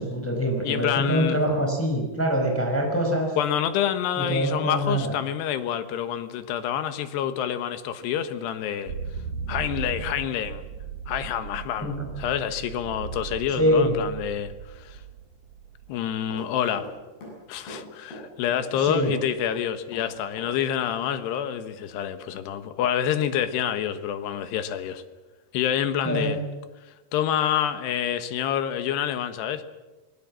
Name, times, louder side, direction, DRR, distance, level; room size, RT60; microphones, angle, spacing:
voice 1, 0.0-3.3 4.2-5.1 11.8-12.1 13.6-13.9 18.7-19.1 26.0-26.3, equal, 5° left, 4.6 m, -24 dB
voice 2, 0.6-1.4 3.4-8.9 9.5-10.6 11.1-15.0 15.9-16.9 17.5-25.0 25.5-26.4 27.1-29.6, left 10 dB, 85° left, 3.5 m, -27 dB
sound 1, 8.9-15.9, right 7 dB, 85° right, 1.4 m, -37 dB
Run, 15.9-16.9 17.2-18.8 19.0-20.6 20.8-21.0, equal, 65° left, 9.9 m, -42 dB
26.0 x 21.0 x 7.5 m
omnidirectional pair, 4.7 m